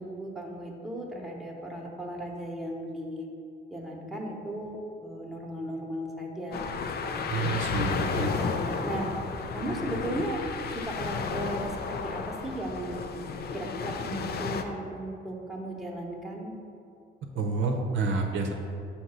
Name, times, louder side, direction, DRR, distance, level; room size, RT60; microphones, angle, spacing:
voice 1, 0.0-3.3 3.7-6.8 7.0-7.2 8.2-9.1 9.5-10.4 10.7-13.1 13.5-16.5, right 1 dB, ahead, -2 dB, 0.9 m, -36 dB
sound 1, 6.5-14.6, left 5 dB, 50° left, 0.4 m, -32 dB
voice 2, 7.3-8.3 17.3-18.5, right 4 dB, 75° right, 2 dB, 0.7 m, -28 dB
6.3 x 2.9 x 5.6 m, 2.5 s
cardioid pair, 90°, 20 cm